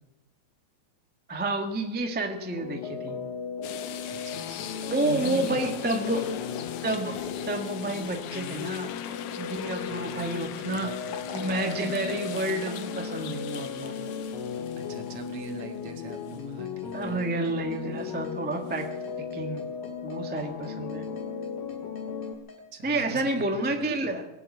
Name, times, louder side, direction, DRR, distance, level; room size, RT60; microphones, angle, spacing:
voice 1, 1.3-3.2 4.9-6.3 6.8-7.2 7.4-8.9 9.4-10.9 11.3-13.9 16.9-18.9 19.3-19.6 20.0-21.0 22.8-24.2, right 2 dB, 10° right, 4 dB, 0.4 m, -30 dB
sound 1, 2.4-22.3, left 7 dB, 90° left, 2.7 m, -36 dB
sound 2, 3.6-15.8 16.3-16.4 18.7-18.9, left 9 dB, 65° left, 1.6 m, -40 dB
voice 2, 4.1-4.7 5.0-6.4 9.8-11.5 14.8-17.2 22.7-24.2, right 5 dB, 70° right, 5 dB, 2.9 m, -41 dB
sound 3, 14.3-22.6, left 3 dB, 15° left, 3.2 m, -51 dB
21.0 x 7.7 x 8.5 m, 1.0 s
omnidirectional pair, 3.3 m